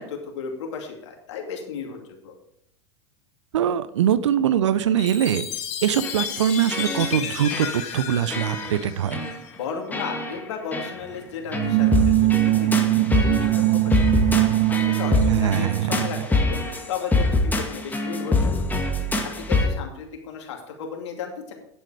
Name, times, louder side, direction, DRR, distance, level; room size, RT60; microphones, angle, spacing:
voice 1, 0.0-2.3 9.6-14.0 14.6-16.6 16.9-18.8 19.2-21.5, left 6 dB, 70° left, 2 dB, 2.5 m, -34 dB
voice 2, 3.5-5.5 5.8-9.2 15.3-15.9, right 9 dB, 80° right, 15 dB, 0.7 m, -22 dB
Chime, 5.0-9.5, left 8 dB, 45° left, 1.9 m, -33 dB
sound 1, 6.0-6.4 6.7-7.3 7.5-8.0 8.3-8.8 9.1-9.4 9.9-10.4 10.7-10.9 11.5-19.7, left 2 dB, 10° left, 1.9 m, -25 dB
sound 2, 11.5-16.3, right 17 dB, 55° right, 1.0 m, -21 dB
9.7 x 8.0 x 4.9 m, 0.76 s
hypercardioid pair, 95°, 15 cm